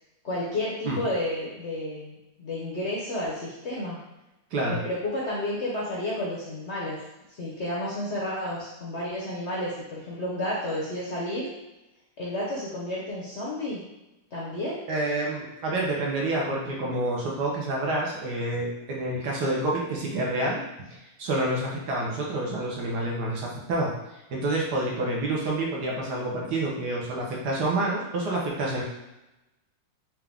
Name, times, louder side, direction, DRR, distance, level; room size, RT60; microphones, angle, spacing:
voice 1, 0.2-4.0 4.7-7.0 7.3-11.5 12.2-13.8 14.3-14.8, left 1 dB, 55° left, -5 dB, 0.7 m, -31 dB
voice 2, 14.9-20.9 21.2-23.9 24.3-28.8, right 2 dB, 70° right, -3 dB, 1.3 m, -28 dB
4.5 x 2.4 x 3.5 m, 0.96 s
omnidirectional pair, 1.9 m